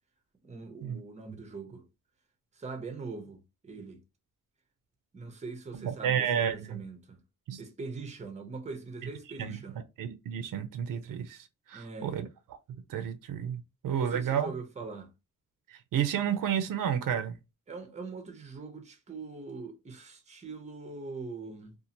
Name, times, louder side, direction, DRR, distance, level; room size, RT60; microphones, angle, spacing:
voice 1, 0.4-1.8 2.6-4.0 5.1-7.2 7.6-9.8 11.7-12.2 13.8-15.1 17.7-21.8, right 4 dB, 20° right, 0.6 m, -42 dB
voice 2, 5.7-6.8 7.5-7.6 9.4-9.6 10.0-12.3 12.9-14.5 15.7-17.4, right 8 dB, 85° right, 0.5 m, -31 dB
2.6 x 2.4 x 2.8 m
wide cardioid pair, 155°, 32 cm